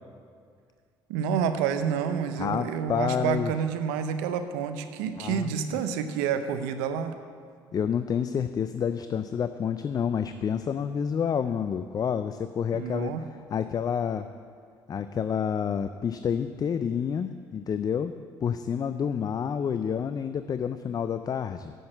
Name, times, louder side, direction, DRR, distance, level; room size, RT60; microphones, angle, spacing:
voice 1, 1.1-7.2 12.7-13.2, right 7 dB, 85° right, 9 dB, 0.6 m, -29 dB
voice 2, 2.4-3.5 5.2-5.5 7.7-13.1 13.5-14.3 14.9-18.1 18.4-21.7, left 7 dB, 40° left, 11 dB, 0.4 m, -29 dB
7.7 x 6.1 x 7.7 m, 2.1 s
supercardioid pair, 65°, 10 cm